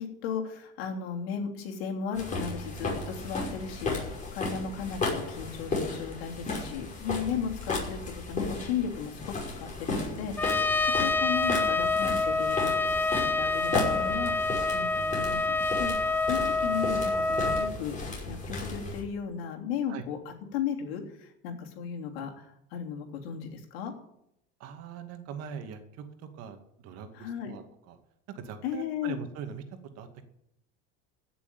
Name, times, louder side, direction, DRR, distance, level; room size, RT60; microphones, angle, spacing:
voice 1, 0.0-8.0 8.3-10.7 11.0-23.9 27.1-27.6 28.6-29.2, left 7 dB, 90° left, 2 dB, 3.2 m, -35 dB
sound 1, 2.1-19.0, left 3 dB, 25° left, 5.7 m, -35 dB
Trumpet, 10.4-17.7, left 3 dB, 5° left, 0.6 m, -27 dB
voice 2, 24.6-28.0 28.3-30.2, right 7 dB, 55° right, 6 dB, 2.3 m, -42 dB
16.0 x 7.0 x 9.1 m, 0.78 s
supercardioid pair, 130°, 29 cm